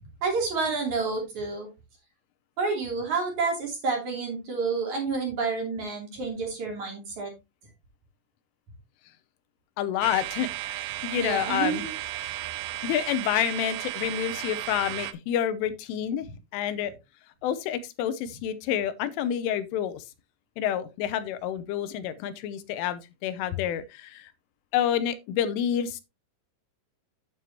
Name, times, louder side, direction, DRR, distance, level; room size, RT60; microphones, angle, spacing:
voice 1, 0.2-1.7 2.6-7.3 11.2-11.9, right 4 dB, 40° right, 4.1 m, -29 dB
voice 2, 9.8-11.9 12.2-12.4 12.8-16.3 16.5-16.9 17.4-20.0 20.6-24.3 24.7-26.0, left 10 dB, 80° left, 3.3 m, -28 dB
sound 1, 10.0-15.1, right 15 dB, 90° right, 3.3 m, -34 dB
9.5 x 9.3 x 2.9 m
omnidirectional pair, 5.7 m